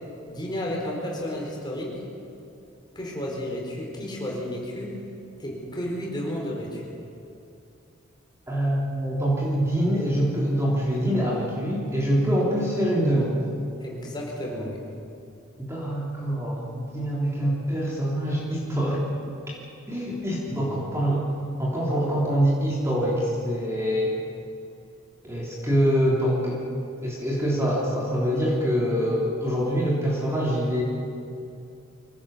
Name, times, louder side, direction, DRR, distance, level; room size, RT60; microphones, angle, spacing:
voice 1, 0.2-2.0 2.9-5.0 5.4-6.8 13.8-14.8 20.5-20.9, equal, 20° left, -2 dB, 4.8 m, -32 dB
voice 2, 8.5-13.4 15.6-19.3 19.9-21.3 21.6-24.2 25.2-26.6 27.0-30.8, equal, 15° right, -5 dB, 3.3 m, -25 dB
24.5 x 17.5 x 7.1 m, 2.7 s
head